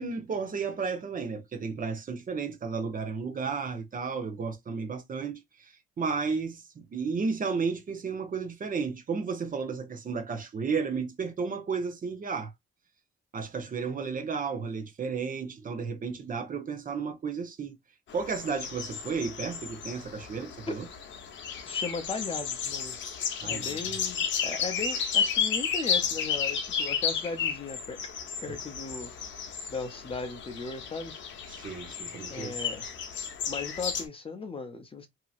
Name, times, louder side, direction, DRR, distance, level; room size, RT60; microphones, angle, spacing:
voice 1, 0.0-12.5 13.3-17.7 18.1-20.8 23.4-23.7 31.5-32.5, right 5 dB, 45° right, 1.0 m, -33 dB
sound 1, 18.1-34.0, left 7 dB, 70° left, 0.8 m, -33 dB
voice 2, 21.7-23.0 23.4-28.1 28.4-29.2 29.7-31.1 32.3-32.9 33.5-35.1, left 4 dB, 25° left, 0.7 m, -37 dB
2.9 x 2.7 x 2.4 m
cardioid pair, 90°, 20 cm